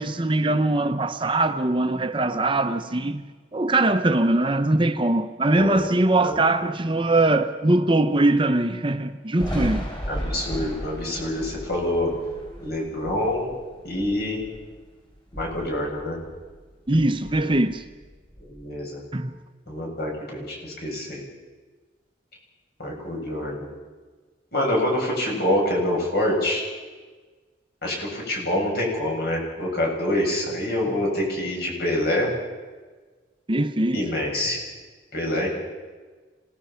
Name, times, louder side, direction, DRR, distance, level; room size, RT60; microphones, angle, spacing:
voice 1, 0.0-9.9 16.9-17.8 19.1-19.4 33.5-34.1, right 2 dB, 30° right, 0.8 m, -22 dB
Thunder, 9.4-14.8 15.2-16.6 16.9-18.6, equal, 25° left, 5.5 m, -35 dB
voice 2, 10.1-12.1 12.6-13.5 13.8-14.4 15.4-16.2 18.5-19.0 19.7-21.2 22.8-23.5 24.5-26.6 27.8-32.3 33.9-34.6 35.1-35.5, left 1 dB, 60° left, 7.5 m, -26 dB
27.5 x 18.5 x 5.8 m
head